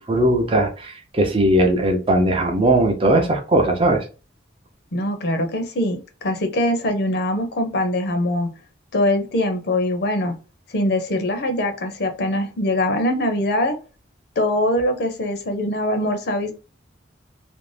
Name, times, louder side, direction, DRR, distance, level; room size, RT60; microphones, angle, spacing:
voice 1, 0.1-4.0, right 1 dB, 30° right, 3 dB, 0.5 m, -18 dB
voice 2, 4.9-8.5 8.9-10.3 10.7-13.8 14.4-16.5, left 1 dB, 55° left, 6 dB, 0.6 m, -22 dB
2.5 x 2.0 x 3.2 m, 0.33 s
head